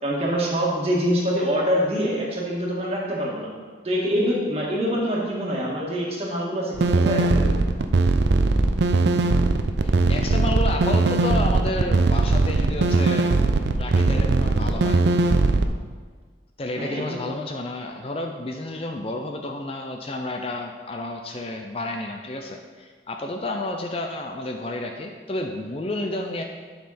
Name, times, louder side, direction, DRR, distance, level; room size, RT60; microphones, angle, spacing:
voice 1, 0.0-3.5 3.8-7.6 16.8-17.2, equal, 35° right, -4 dB, 1.9 m, -25 dB
sound 1, 6.7-15.6, right 3 dB, 70° right, 0.5 m, -20 dB
voice 2, 9.8-13.3 13.8-15.0 16.6-26.4, left 2 dB, 30° left, 3 dB, 0.5 m, -31 dB
10.5 x 5.7 x 4.2 m, 1.5 s
head